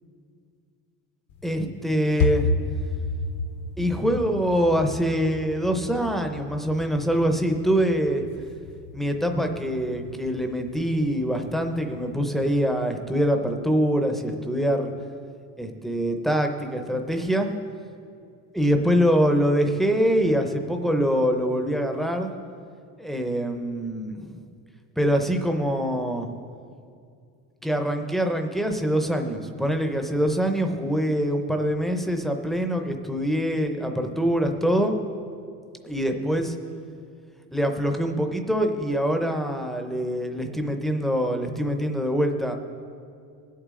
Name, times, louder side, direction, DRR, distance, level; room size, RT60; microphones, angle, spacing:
sound 1, 1.3-12.7, left 2 dB, 90° left, 1.2 m, -33 dB
voice 1, 1.4-2.5 3.8-8.2 8.9-14.9 15.6-17.5 18.5-22.3 23.0-24.4 25.0-26.3 27.6-35.0 35.8-36.5 37.5-42.5, equal, ahead, 4 dB, 0.6 m, -24 dB
20.0 x 8.4 x 3.7 m, 2.4 s
cardioid pair, 160°, 37 cm